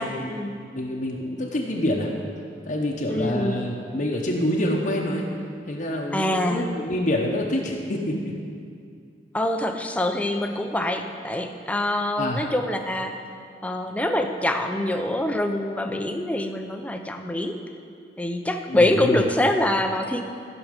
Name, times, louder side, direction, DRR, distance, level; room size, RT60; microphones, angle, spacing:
voice 1, 0.0-0.6 3.1-3.6 6.1-6.7 9.3-13.2 13.6-17.6 18.2-20.2, left 1 dB, 10° left, 5 dB, 0.6 m, -25 dB
voice 2, 0.7-2.1 2.6-5.2 5.7-8.3 12.2-12.4 18.7-19.2, left 1 dB, 45° left, -1 dB, 0.9 m, -26 dB
13.5 x 6.1 x 5.3 m, 2.3 s
head